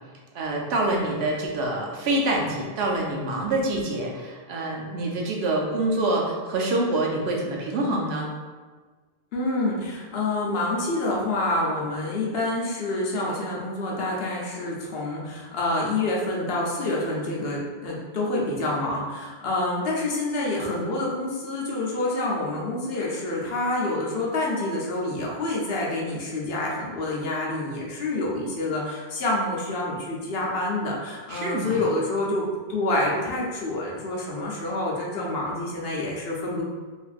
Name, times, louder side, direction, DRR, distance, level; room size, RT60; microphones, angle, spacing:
voice 1, 0.3-8.3 31.3-31.8, right 2 dB, 80° right, -1 dB, 0.8 m, -26 dB
voice 2, 9.3-32.4 32.7-36.6, left 2 dB, 70° left, -3 dB, 0.9 m, -27 dB
2.9 x 2.5 x 2.4 m, 1.4 s
omnidirectional pair, 1.1 m